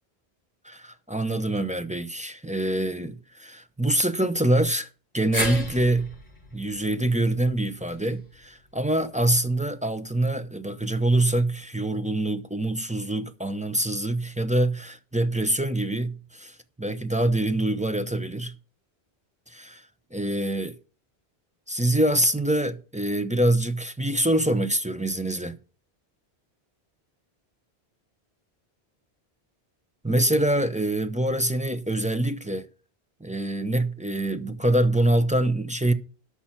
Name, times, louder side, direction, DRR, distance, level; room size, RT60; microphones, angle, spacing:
voice 1, 0.6-4.9 5.1-6.1 6.5-18.6 19.5-20.8 21.7-25.6 30.0-32.7 33.2-35.9, right 1 dB, 10° right, 0.6 m, -25 dB
sound 1, 5.3-9.6 9.9-10.0 11.2-11.3, left 1 dB, 10° left, 5.1 m, -36 dB
13.0 x 5.8 x 5.9 m
omnidirectional pair, 1.1 m